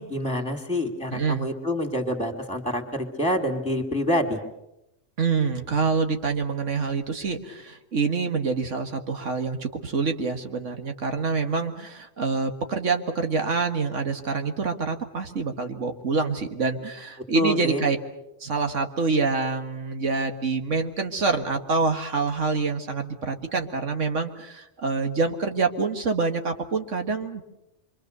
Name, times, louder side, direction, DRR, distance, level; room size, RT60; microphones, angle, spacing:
voice 1, 0.0-4.4 17.3-17.8, equal, 5° left, 3 dB, 2.7 m, -27 dB
voice 2, 1.1-1.5 5.2-18.0 18.4-27.4, right 4 dB, 85° right, 5 dB, 2.1 m, -26 dB
27.0 x 24.5 x 6.8 m, 0.87 s
omnidirectional pair, 1.2 m